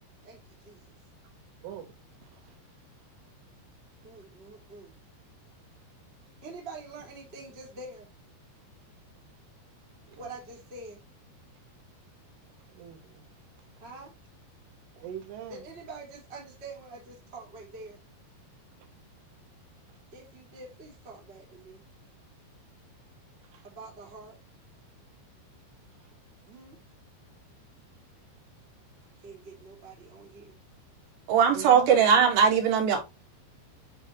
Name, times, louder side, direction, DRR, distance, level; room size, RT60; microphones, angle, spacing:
voice 1, 0.2-0.8 4.0-4.9 6.4-8.1 10.2-11.0 13.8-14.1 15.5-18.0 20.1-21.8 23.6-24.4 26.5-26.8 29.2-30.5, right 3 dB, 25° right, 1.6 m, -45 dB
voice 2, 1.6-2.0 2.2-2.6 10.1-10.3 12.7-13.3 15.0-15.6 23.5-23.6 31.5-32.0, right 10 dB, 85° right, 3.9 m, -42 dB
voice 3, 31.3-33.0, right 7 dB, 70° right, 3.7 m, -20 dB
10.0 x 3.8 x 3.1 m
omnidirectional pair, 5.4 m